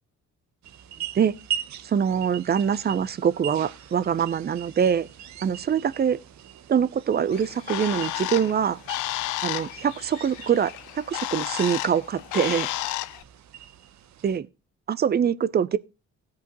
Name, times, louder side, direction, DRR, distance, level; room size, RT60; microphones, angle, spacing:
sound 1, 0.6-14.4, right 9 dB, 65° right, 0.9 m, -41 dB
voice 1, 1.8-5.1 5.4-6.2 6.7-8.8 9.4-12.7 14.2-14.5 14.9-15.8, right 8 dB, 35° right, 0.6 m, -24 dB
Bird, 7.3-13.2, left 17 dB, 90° left, 0.5 m, -32 dB
17.0 x 5.7 x 3.0 m
cardioid pair, 90°, 30 cm